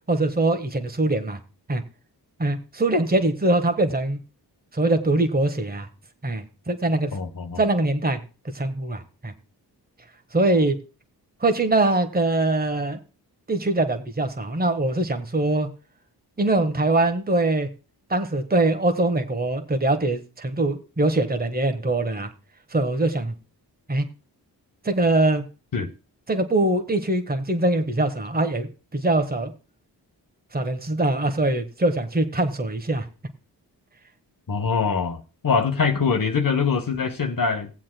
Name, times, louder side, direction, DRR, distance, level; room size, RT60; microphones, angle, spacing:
voice 1, 0.1-1.4 1.7-1.8 2.4-4.2 4.7-5.9 6.2-7.2 7.6-8.2 8.5-9.3 10.3-10.7 11.4-13.0 13.5-15.7 16.4-17.7 18.1-22.3 22.7-23.3 23.9-24.1 24.8-25.4 26.3-29.5 30.5-33.1, right 2 dB, 20° right, 1.5 m, -23 dB
voice 2, 7.1-7.6 25.7-25.9 34.5-37.7, left 5 dB, 50° left, 1.2 m, -23 dB
19.5 x 7.4 x 2.2 m
cardioid pair, 45°, 42 cm